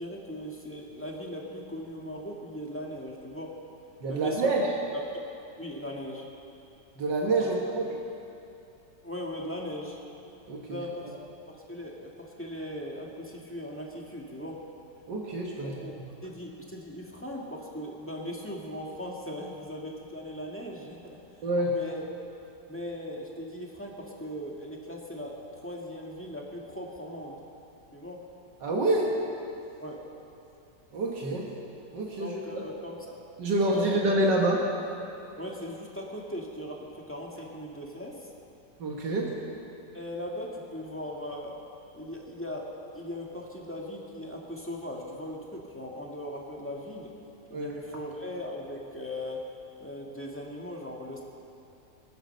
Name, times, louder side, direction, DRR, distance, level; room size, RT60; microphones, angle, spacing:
voice 1, 0.0-3.5 4.1-4.5 4.9-5.3 5.6-6.3 9.0-10.0 10.7-11.1 11.5-14.6 15.6-15.9 16.2-21.2 21.7-22.0 22.7-27.4 27.9-28.2 29.8-30.0 32.2-33.2 33.7-34.0 35.4-38.3 39.9-41.6 41.9-42.6 42.9-47.1 47.5-49.4 49.8-51.2, left 1 dB, 5° left, -2 dB, 1.8 m, -39 dB
voice 2, 4.0-4.7 7.0-7.9 10.5-10.8 15.1-15.7 21.4-21.8 28.6-29.1 30.9-31.5 31.9-32.6 33.4-34.6 38.8-39.3 47.5-47.7, right 2 dB, 80° right, -1 dB, 2.0 m, -27 dB
21.0 x 9.3 x 6.7 m, 2.7 s
omnidirectional pair, 1.9 m